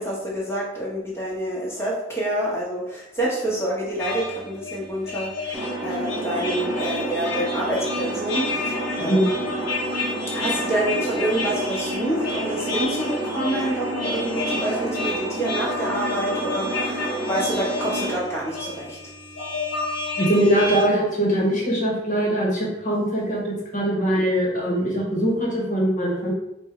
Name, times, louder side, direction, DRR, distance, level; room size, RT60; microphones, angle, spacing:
voice 1, 0.0-9.6 10.3-19.0, right 1 dB, 15° left, -6 dB, 1.5 m, -27 dB
sound 1, 4.0-20.8, left 3 dB, 70° left, 1.2 m, -31 dB
sound 2, 5.5-18.2, right 1 dB, 15° right, 0.8 m, -30 dB
voice 2, 9.0-9.3 20.2-26.3, right 1 dB, 45° left, -3 dB, 1.5 m, -22 dB
3.7 x 2.7 x 4.5 m, 0.86 s
head